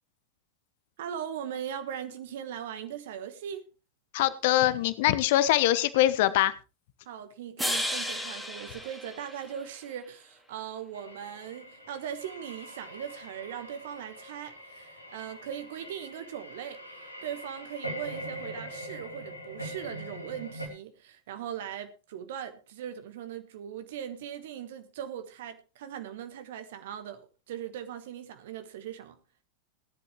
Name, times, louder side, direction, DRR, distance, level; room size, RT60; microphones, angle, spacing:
voice 1, 1.0-3.7 7.0-16.8 17.2-29.2, right 9 dB, 55° right, 1.3 m, -39 dB
voice 2, 4.1-6.5, left 14 dB, 50° left, 0.9 m, -23 dB
sound 1, 7.6-9.9, equal, ahead, 1.9 m, -34 dB
sound 2, 10.9-20.7, right 1 dB, 90° left, 2.3 m, -42 dB
17.5 x 11.0 x 3.1 m
figure-of-eight pair, 90°, 0 cm